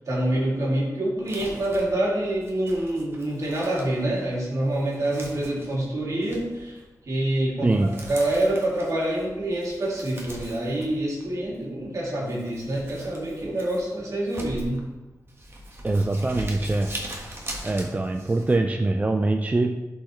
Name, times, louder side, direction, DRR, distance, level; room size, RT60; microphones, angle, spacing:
voice 1, 0.1-6.8 7.1-14.8, right 1 dB, 60° right, -4 dB, 2.3 m, -26 dB
Crumpling crinkling, 1.2-18.5, right 1 dB, 40° right, 1.4 m, -42 dB
voice 2, 7.6-7.9 15.8-17.0 17.6-19.8, right 2 dB, 25° right, 5 dB, 0.4 m, -23 dB
11.5 x 4.7 x 3.1 m, 1.1 s
wide cardioid pair, 115°, 6 cm